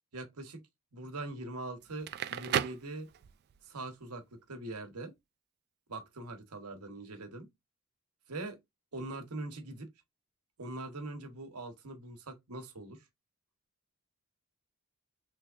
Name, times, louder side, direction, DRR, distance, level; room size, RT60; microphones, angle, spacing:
voice 1, 0.1-0.6 0.9-3.1 3.6-5.1 5.9-7.5 8.3-8.6 8.9-9.9 10.6-13.0, right 2 dB, 85° right, 1.0 m, -42 dB
Crackle, 1.9-3.6, right 9 dB, 45° right, 0.3 m, -34 dB
3.4 x 3.1 x 2.4 m
head